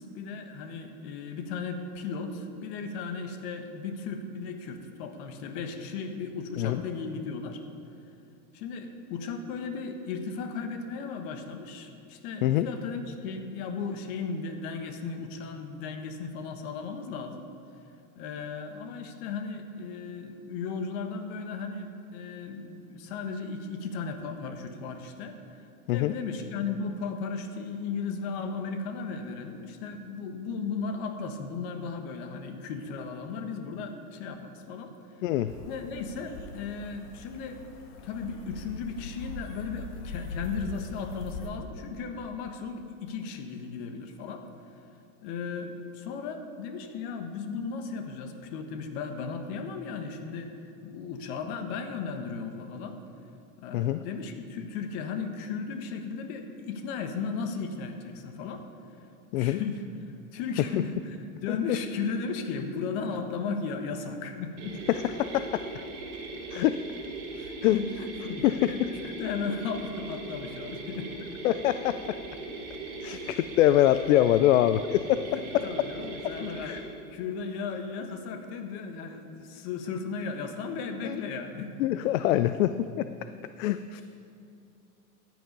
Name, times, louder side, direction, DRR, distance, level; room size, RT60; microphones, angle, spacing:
voice 1, 0.0-7.6 8.5-17.4 18.1-25.4 25.9-34.9 35.7-37.6 38.0-44.4 45.2-50.5 50.8-53.0 53.6-58.6 59.3-59.8 60.3-61.2 61.4-64.8 67.3-71.3 73.1-73.2 75.3-76.8 77.1-81.9, left 5 dB, 45° left, 7 dB, 1.3 m, -36 dB
sound 1, 35.5-41.5, left 3 dB, 85° left, 1.6 m, -41 dB
sound 2, 64.6-76.8, right 2 dB, 35° right, 2.3 m, -39 dB
voice 2, 64.9-65.8 66.5-66.8 67.6-67.8 68.4-68.8 71.4-72.2 73.0-75.2 75.5-75.6 76.6-76.8 81.0-81.2 81.8-83.1 83.6-84.0, left 13 dB, 60° left, 12 dB, 0.5 m, -24 dB
13.5 x 9.4 x 5.4 m, 2.6 s
supercardioid pair, 140°, 45 cm